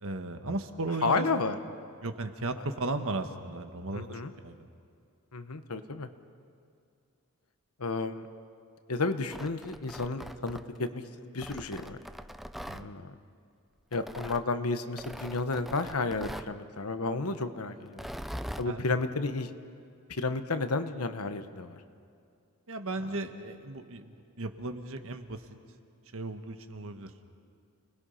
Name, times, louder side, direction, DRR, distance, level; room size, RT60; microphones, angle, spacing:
voice 1, 0.0-1.3 2.0-4.7 12.6-12.9 18.6-18.9 22.7-25.4 26.1-27.1, right 2 dB, 65° right, 7 dB, 1.4 m, -36 dB
voice 2, 1.0-1.6 3.9-4.3 5.3-6.1 7.8-8.3 8.9-12.0 12.7-13.1 13.9-18.0 18.6-19.5 20.1-21.8, left 3 dB, 75° left, 9 dB, 1.1 m, -32 dB
Tearing, 9.1-10.9 11.4-12.8 13.9-14.4 15.0-16.5 17.9-18.7, equal, ahead, 0.5 m, -42 dB
30.0 x 20.0 x 5.7 m, 2.5 s
head